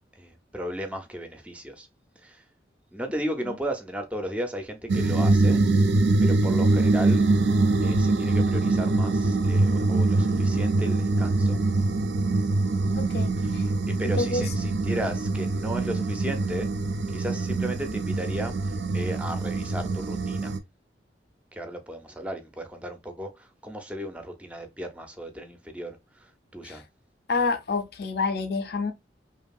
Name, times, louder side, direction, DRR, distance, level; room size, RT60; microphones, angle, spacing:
voice 1, 0.2-1.9 2.2-2.4 2.9-5.6 6.2-7.3 7.8-11.6 13.1-16.7 17.1-20.6 21.5-26.8, equal, 5° right, 0.5 m, -35 dB
sound 1, 4.9-20.6, right 2 dB, 80° right, 0.5 m, -24 dB
voice 2, 13.0-13.6 14.0-14.5 26.6-26.8 27.3-28.9, left 3 dB, 60° left, 0.5 m, -28 dB
2.7 x 2.6 x 2.3 m
head